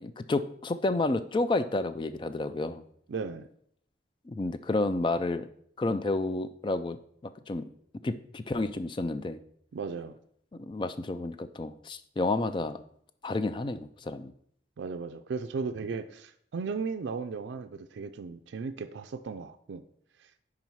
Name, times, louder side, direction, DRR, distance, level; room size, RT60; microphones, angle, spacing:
voice 1, 0.0-2.8 4.3-5.5 5.8-7.6 8.0-9.4 10.6-12.8 13.2-14.3, left 2 dB, 25° left, 13 dB, 0.3 m, -30 dB
voice 2, 3.1-3.5 9.7-10.2 14.8-19.8, right 5 dB, 85° right, 7 dB, 0.4 m, -36 dB
5.5 x 4.9 x 4.6 m, 0.66 s
head